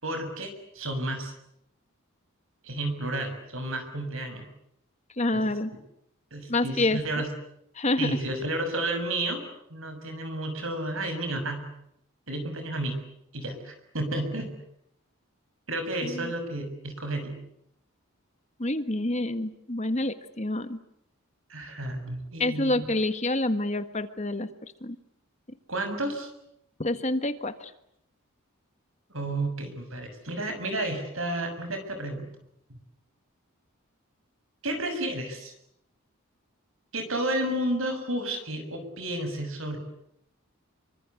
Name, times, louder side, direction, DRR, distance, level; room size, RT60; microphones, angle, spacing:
voice 1, 0.0-1.3 2.6-4.5 5.3-5.5 6.3-7.3 8.0-9.4 9.7-11.6 12.3-13.0 13.3-14.5 15.7-17.4 21.5-22.9 25.7-26.3 29.1-32.3 32.7-32.8 34.6-35.5 36.9-39.8, right 1 dB, 65° right, 7 dB, 6.7 m, -31 dB
voice 2, 5.2-5.7 6.5-7.0 7.8-8.1 16.0-16.3 18.6-20.8 22.4-24.5 24.8-24.9 26.8-27.7, left 2 dB, 30° left, 10 dB, 1.5 m, -27 dB
27.5 x 24.5 x 8.4 m, 0.76 s
head